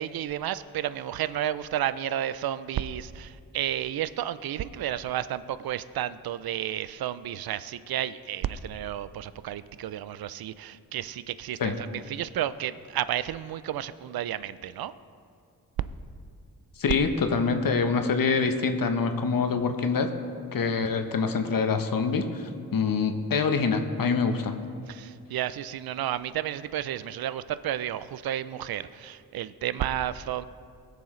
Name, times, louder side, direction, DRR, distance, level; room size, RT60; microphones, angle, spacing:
voice 1, 0.0-14.9 24.9-30.4, right 11 dB, 70° right, 15 dB, 0.5 m, -32 dB
voice 2, 16.8-20.1 20.5-24.5, left 5 dB, 60° left, 6 dB, 0.9 m, -25 dB
17.5 x 6.9 x 3.2 m, 2.3 s
cardioid pair, 50°, 38 cm